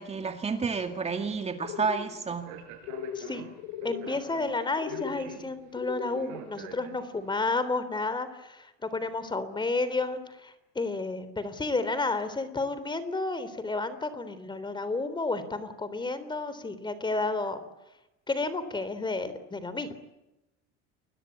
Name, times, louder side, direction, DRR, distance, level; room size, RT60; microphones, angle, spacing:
voice 1, 0.0-2.6, right 5 dB, 20° right, 6 dB, 2.2 m, -30 dB
sound 1, 1.6-2.1 2.8-3.3 3.6-4.1 4.8-5.2 5.7-6.3, left 9 dB, 80° left, 4.3 m, -37 dB
Speech, 2.3-7.3, right 8 dB, 90° right, 7.1 m, -46 dB
voice 2, 3.2-3.5 3.8-17.6 18.3-20.0, left 3 dB, 15° left, 13 dB, 3.5 m, -31 dB
29.5 x 22.5 x 8.6 m, 0.95 s
cardioid pair, 135°, 29 cm